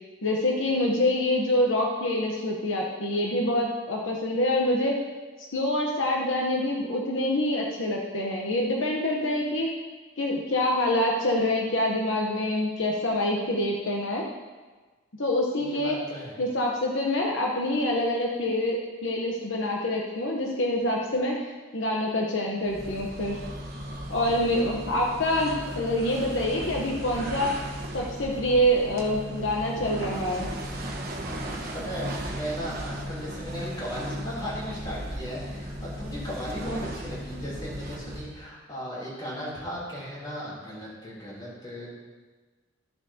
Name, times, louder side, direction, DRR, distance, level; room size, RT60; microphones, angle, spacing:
voice 1, 0.2-4.9 5.5-9.7 10.2-14.2 15.2-16.0 16.4-23.4 24.1-27.5 27.9-30.5, left 1 dB, 70° left, -1 dB, 1.0 m, -26 dB
voice 2, 15.6-16.4 31.7-41.9, equal, 20° left, -7 dB, 3.2 m, -36 dB
sound 1, 22.6-38.4, equal, 50° right, 1.2 m, -36 dB
14.0 x 7.3 x 2.8 m, 1.3 s
head